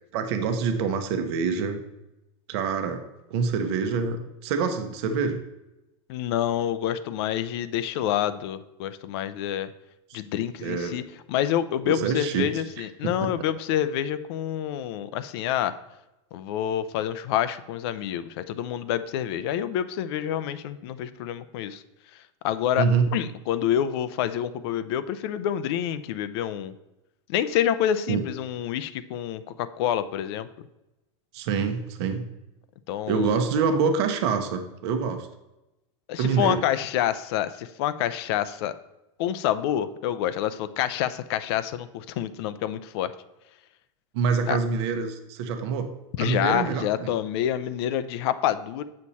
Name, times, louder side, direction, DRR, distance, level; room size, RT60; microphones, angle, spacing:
voice 1, 0.1-1.8 2.5-3.0 3.3-5.4 10.1-10.2 10.6-11.0 11.8-12.5 12.8-13.3 22.8-23.1 28.1-28.2 31.3-32.2 33.1-35.3 36.2-36.6 44.1-45.9 46.2-47.1, right 5 dB, 55° right, 6 dB, 1.0 m, -26 dB
voice 2, 6.1-9.7 10.1-11.0 11.3-15.7 16.3-21.8 22.4-22.9 23.1-26.7 27.3-30.5 32.9-33.3 36.1-38.7 39.2-43.1 44.5-44.6 46.2-48.8, left 11 dB, 50° left, 13 dB, 0.5 m, -27 dB
8.6 x 6.5 x 4.1 m, 0.96 s
supercardioid pair, 165°, 17 cm